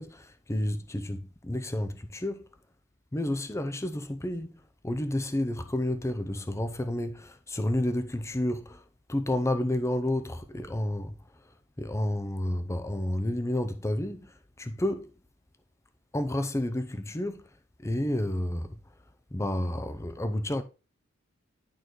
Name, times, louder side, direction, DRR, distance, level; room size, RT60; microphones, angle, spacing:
voice 1, 0.0-2.4 3.1-4.6 4.8-8.8 9.1-11.1 11.8-14.3 14.6-15.1 16.1-17.4 17.8-18.7 19.3-20.6, left 1 dB, 15° left, 0.6 m, -30 dB
11.0 x 4.2 x 3.1 m
head